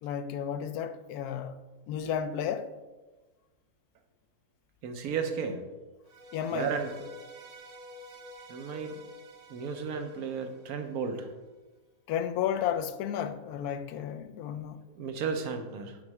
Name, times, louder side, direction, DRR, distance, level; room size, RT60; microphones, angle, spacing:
voice 1, 0.0-1.5 1.9-2.7 6.3-6.8 12.1-14.8, left 9 dB, 85° left, 1.1 m, -32 dB
voice 2, 4.8-5.7 6.5-6.9 8.5-9.0 9.5-11.3 15.0-16.0, right 6 dB, 80° right, 1.3 m, -33 dB
sound 1, 6.0-11.3, equal, 45° right, 0.6 m, -50 dB
8.2 x 4.3 x 4.7 m
omnidirectional pair, 1.6 m